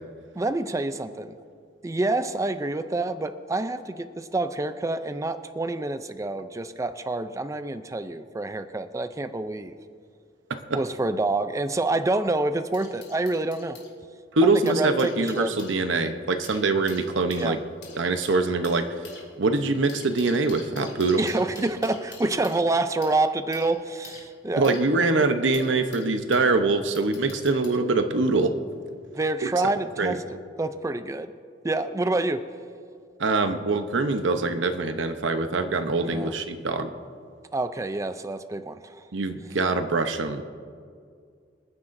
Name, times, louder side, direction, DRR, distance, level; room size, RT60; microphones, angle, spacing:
voice 1, 0.4-1.4 1.8-9.7 10.7-13.8 14.7-15.5 17.4-17.6 21.2-25.3 29.1-31.3 31.6-32.5 36.0-36.3 37.5-39.0, right 2 dB, 15° right, 10 dB, 0.4 m, -27 dB
sound 1, 11.8-13.9 14.5-26.5 26.9-27.8 28.7-28.9, left 5 dB, 65° left, 2.9 m, -48 dB
voice 2, 14.3-17.6 18.0-19.1 19.4-21.2 24.6-28.6 30.0-30.2 33.2-36.9 39.1-40.4, right 3 dB, 90° right, 7 dB, 0.8 m, -24 dB
27.0 x 9.7 x 2.6 m, 2.2 s
head